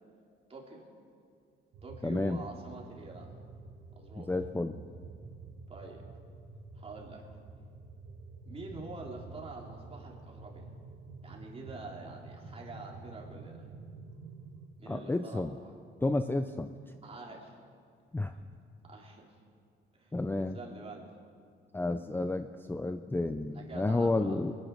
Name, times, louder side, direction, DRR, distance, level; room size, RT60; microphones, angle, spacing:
voice 1, 0.5-0.8 1.8-3.3 4.0-4.3 5.7-6.0 6.8-7.2 8.5-10.6 11.2-13.7 14.8-15.7 17.0-17.5 18.9-19.2 20.0-20.2 20.5-21.0 23.5-24.4, right 3 dB, 30° right, -2 dB, 3.6 m, -46 dB
sound 1, 1.7-14.7, right 3 dB, 70° right, 1.7 m, -49 dB
voice 2, 2.0-2.4 4.3-4.8 14.9-15.5 16.0-16.7 18.1-18.3 20.1-20.6 21.7-24.5, left 2 dB, 10° left, 9 dB, 0.5 m, -31 dB
21.0 x 10.5 x 6.2 m, 2.3 s
cardioid pair, 90°, 20 cm